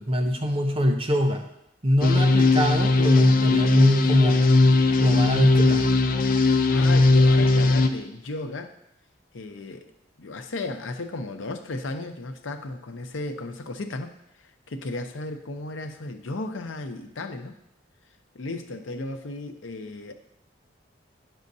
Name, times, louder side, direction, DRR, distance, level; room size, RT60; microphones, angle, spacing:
voice 1, 0.0-1.4 1.8-4.4 5.0-5.9, equal, 30° right, 4 dB, 0.7 m, -23 dB
sound 1, 2.0-7.9, left 3 dB, 50° left, 0.4 m, -19 dB
voice 2, 6.7-8.7 9.3-9.9 10.2-14.2 14.7-17.6 18.3-20.1, left 2 dB, 90° left, 6 dB, 0.7 m, -34 dB
9.4 x 6.3 x 2.7 m, 0.79 s
head